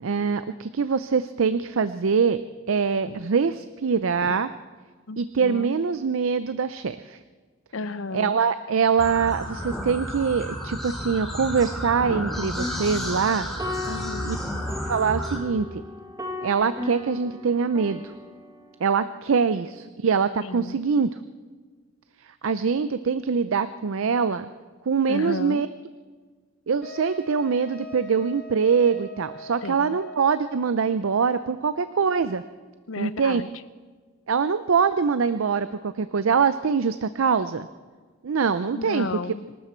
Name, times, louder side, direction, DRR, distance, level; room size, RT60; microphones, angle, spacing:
voice 1, 0.0-2.4 2.7-4.5 5.2-7.2 8.1-13.5 14.2-14.4 14.9-15.7 16.4-18.0 18.8-21.1 22.4-24.5 24.9-25.7 26.7-32.4 33.0-33.4 34.3-37.7 38.2-39.1, right 5 dB, 80° right, 13 dB, 0.5 m, -23 dB
voice 2, 5.1-5.8 7.7-8.4 13.8-14.4 20.4-20.8 25.1-25.7 29.6-30.0 32.9-33.5 38.7-39.5, left 3 dB, 75° left, 15 dB, 0.6 m, -33 dB
sound 1, 9.0-15.4, equal, ahead, 2.4 m, -32 dB
sound 2, 12.3-18.9, left 2 dB, 15° right, 1.2 m, -37 dB
Wind instrument woodwind instrument, 26.8-30.7, left 1 dB, 45° left, 2.0 m, -42 dB
25.5 x 12.5 x 4.5 m, 1.4 s
head